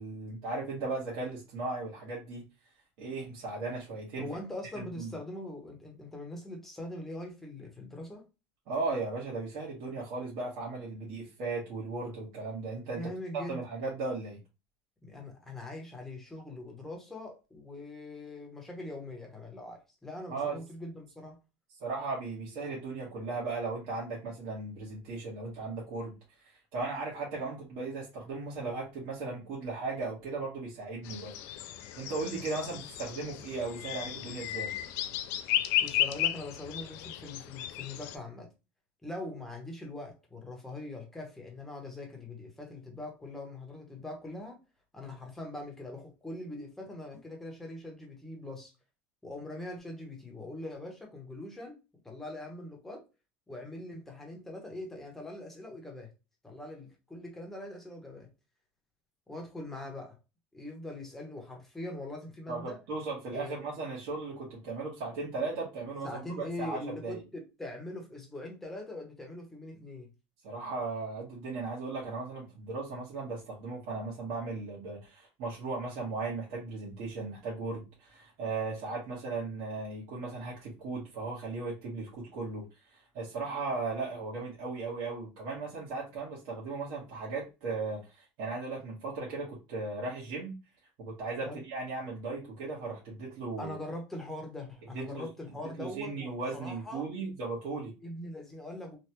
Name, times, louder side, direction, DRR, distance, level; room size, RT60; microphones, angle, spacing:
voice 1, 0.0-2.4 3.0-4.3 5.0-5.1 8.7-13.0 13.3-14.4 20.3-20.5 21.8-26.1 26.7-31.3 32.0-34.7 62.5-67.2 70.4-82.6 82.9-90.5 91.0-93.7 94.9-95.3 95.8-97.9, right 3 dB, 65° right, 1.3 m, -37 dB
voice 2, 4.2-8.2 12.9-13.6 15.0-21.4 35.8-38.5 39.0-44.6 44.9-48.7 49.2-51.8 52.0-53.0 53.5-56.1 56.4-58.3 59.3-60.2 60.5-62.8 63.3-63.7 66.0-70.1 91.4-91.6 93.6-97.1 98.0-99.0, left 1 dB, 5° left, 0.9 m, -42 dB
sound 1, 31.0-38.2, left 12 dB, 60° left, 0.3 m, -34 dB
3.3 x 2.2 x 2.9 m
cardioid pair, 155°, 5 cm